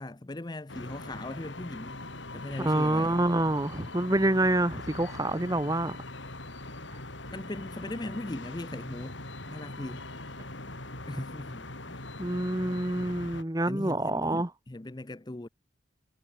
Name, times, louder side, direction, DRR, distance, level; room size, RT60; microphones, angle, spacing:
voice 1, 0.0-2.0 2.3-3.2 7.3-9.2 9.5-10.1 11.1-12.0 13.6-15.5, left 1 dB, 20° left, 0.6 m, -39 dB
sound 1, 0.7-13.4, left 2 dB, 70° left, 5.7 m, -42 dB
voice 2, 2.6-6.0 12.2-14.5, right 1 dB, 20° right, 1.2 m, -27 dB
head